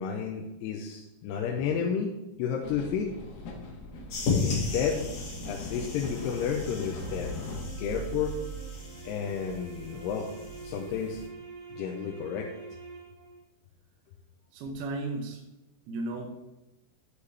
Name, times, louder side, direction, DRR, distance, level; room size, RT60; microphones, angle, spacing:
voice 1, 0.0-2.1 2.4-3.1 4.4-5.1 5.5-7.4 7.8-8.4 9.1-10.3 10.6-11.2 11.7-12.5, left 7 dB, 85° left, 1 dB, 2.8 m, -31 dB
sound 1, 2.6-7.6, left 3 dB, 70° left, 3.2 m, -41 dB
sound 2, 4.1-11.3, left 3 dB, 50° left, 2.9 m, -35 dB
sound 3, 6.1-13.4, right 5 dB, 45° right, 1.3 m, -47 dB
voice 2, 14.5-15.4 15.9-16.4, right 2 dB, 75° right, 1 dB, 2.7 m, -34 dB
9.6 x 8.2 x 3.4 m, 0.99 s
omnidirectional pair, 4.7 m